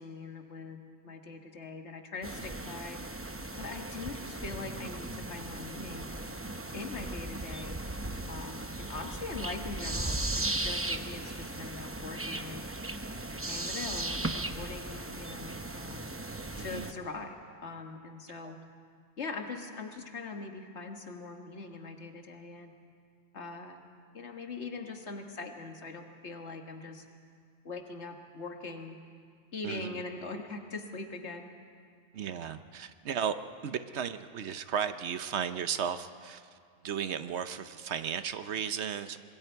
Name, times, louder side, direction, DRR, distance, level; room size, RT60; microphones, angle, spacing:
voice 1, 0.0-3.0 3.6-6.1 6.7-7.8 8.3-12.6 13.5-16.0 16.6-17.4 17.6-18.6 19.2-22.7 23.3-23.8 24.1-27.0 27.7-29.0 29.5-31.5, left 3 dB, 75° left, 4 dB, 1.8 m, -42 dB
sound 1, 2.2-16.9, right 2 dB, 15° right, 0.6 m, -37 dB
voice 2, 16.5-16.9 18.4-18.6 29.6-30.0 32.1-33.3 33.6-36.6 36.8-39.2, right 8 dB, 75° right, 11 dB, 1.0 m, -35 dB
26.0 x 21.5 x 4.6 m, 2.2 s
omnidirectional pair, 1.2 m